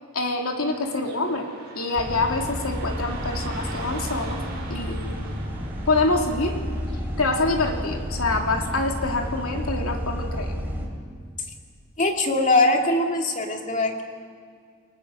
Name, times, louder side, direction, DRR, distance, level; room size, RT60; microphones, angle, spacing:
voice 1, 0.1-1.5 1.7-4.4 4.7-5.3 5.9-6.6 7.2-10.6, left 3 dB, 85° left, 2 dB, 2.8 m, -26 dB
Car passing by / Traffic noise roadway noise, 0.6-9.6, right 3 dB, 50° right, 5.3 m, -42 dB
sound 1, 2.0-10.9, equal, 10° right, 3.1 m, -31 dB
voice 2, 12.0-14.0, left 2 dB, 35° left, 2 dB, 2.4 m, -21 dB
28.5 x 19.0 x 6.4 m, 2.1 s
head